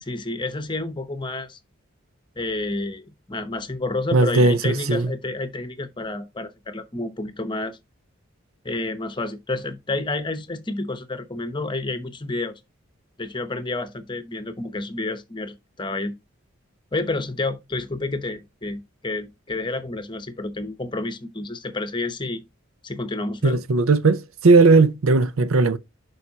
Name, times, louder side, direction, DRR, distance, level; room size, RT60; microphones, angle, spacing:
voice 1, 0.0-1.6 2.4-7.8 8.6-12.6 13.2-16.1 16.9-22.4 22.8-23.6, left 2 dB, 20° left, 0.9 m, -30 dB
voice 2, 4.1-5.1 23.4-25.8, right 3 dB, 75° right, 0.6 m, -17 dB
11.0 x 4.9 x 2.8 m
head